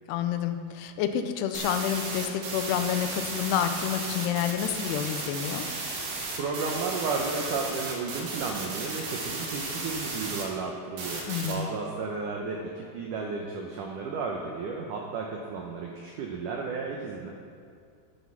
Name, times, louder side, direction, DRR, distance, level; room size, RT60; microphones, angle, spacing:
voice 1, 0.1-5.7 11.3-11.7, left 9 dB, 80° left, 8 dB, 2.7 m, -29 dB
sound 1, 1.5-10.4 11.0-11.5, right 3 dB, 65° right, 3.6 m, -34 dB
voice 2, 6.4-17.3, right 4 dB, 85° right, 0 dB, 1.8 m, -33 dB
10.0 x 9.7 x 5.9 m, 2.3 s
omnidirectional pair, 5.0 m